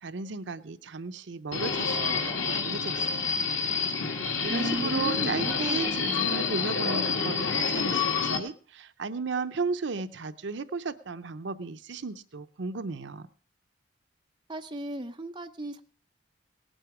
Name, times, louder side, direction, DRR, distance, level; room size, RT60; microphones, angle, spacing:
voice 1, 0.0-3.4 4.4-13.3, right 4 dB, 70° right, 0.6 m, -35 dB
Subway metro underground, 1.5-8.4, left 5 dB, 90° left, 1.6 m, -28 dB
voice 2, 4.5-6.5 14.5-15.8, right 1 dB, 25° right, 0.7 m, -35 dB
18.5 x 9.0 x 4.8 m
head